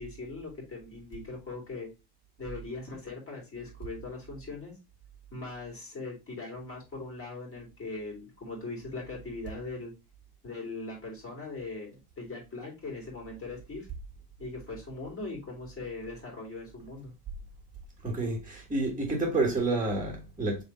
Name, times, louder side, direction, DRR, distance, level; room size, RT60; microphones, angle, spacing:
voice 1, 0.0-1.9 2.4-4.7 5.3-9.9 10.4-13.9 14.4-17.1, left 3 dB, 30° left, 2.7 m, -40 dB
voice 2, 18.0-20.6, right 2 dB, 10° right, 1.6 m, -29 dB
3.6 x 3.4 x 4.2 m
supercardioid pair, 110°, 45 cm